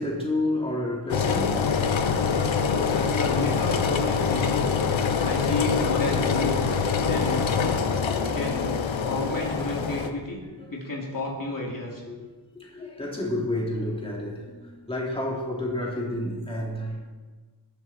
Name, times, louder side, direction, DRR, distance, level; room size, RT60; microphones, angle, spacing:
voice 1, 0.0-1.8 8.0-8.2 10.5-10.7 12.1-12.2 12.5-17.0, left 1 dB, 10° left, 3.2 m, -30 dB
Engine, 1.1-10.1, left 5 dB, 85° left, 1.2 m, -25 dB
voice 2, 2.9-4.7 5.2-6.6 7.0-7.5 8.3-8.7 9.0-10.4 10.7-12.0, left 2 dB, 45° left, 3.3 m, -31 dB
21.0 x 12.0 x 4.5 m
wide cardioid pair, 110°, 45 cm